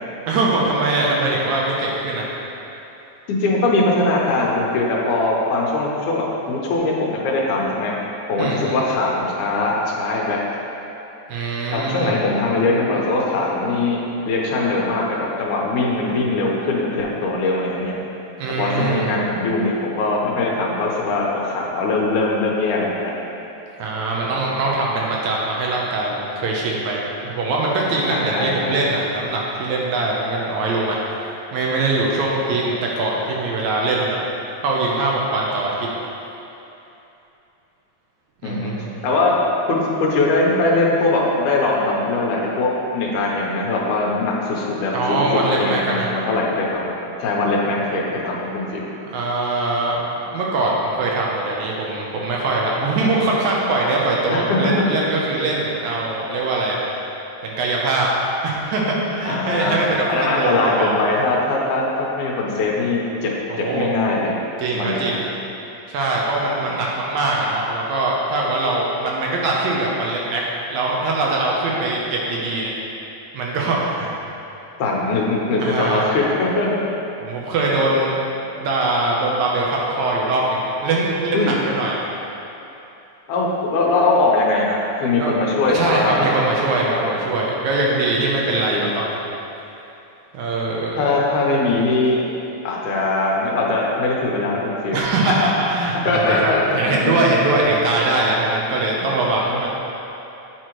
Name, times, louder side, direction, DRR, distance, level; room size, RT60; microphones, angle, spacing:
voice 1, 0.3-2.3 8.4-8.8 11.3-12.2 18.4-19.2 23.7-31.1 31.5-34.2 34.6-35.9 38.4-39.1 44.9-46.1 49.1-56.8 57.4-58.1 58.4-61.0 63.5-63.9 64.6-65.2 65.9-70.4 70.7-72.7 73.3-74.1 75.6-76.1 77.2-78.2 78.6-82.0 85.2-85.3 85.7-89.3 90.3-90.9 94.9-99.7, right 2 dB, 75° right, -3 dB, 1.9 m, -22 dB
voice 2, 3.3-7.9 8.3-10.4 11.7-17.9 18.6-23.1 28.1-28.8 38.4-38.7 39.0-39.3 39.7-45.2 45.5-46.9 47.2-48.9 54.3-54.7 59.3-59.8 60.1-63.3 63.6-64.3 64.7-65.2 74.8-76.8 81.3-81.5 83.3-86.3 86.9-87.1 88.4-88.9 90.9-92.2 92.6-95.0 95.3-95.4 96.1-97.1 99.5-99.7, left 2 dB, 80° left, -3 dB, 2.2 m, -21 dB
8.6 x 4.7 x 3.0 m, 2.9 s
omnidirectional pair, 3.6 m